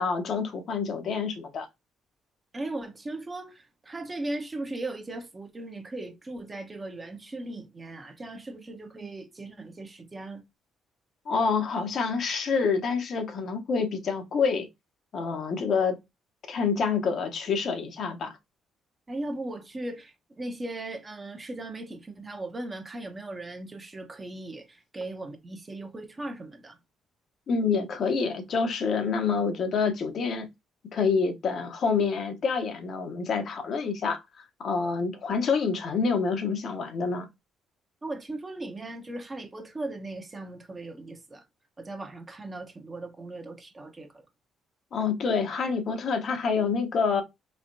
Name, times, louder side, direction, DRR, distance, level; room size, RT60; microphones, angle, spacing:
voice 1, 0.0-1.7 11.3-14.7 15.1-16.0 16.5-18.4 27.5-30.5 30.9-34.2 34.6-37.3 44.9-47.2, left 5 dB, 60° left, 0.9 m, -27 dB
voice 2, 2.5-10.4 19.1-26.8 38.0-41.4 41.8-44.2, right 2 dB, 25° right, 0.9 m, -38 dB
3.3 x 3.2 x 2.6 m
supercardioid pair, 75°, 0 cm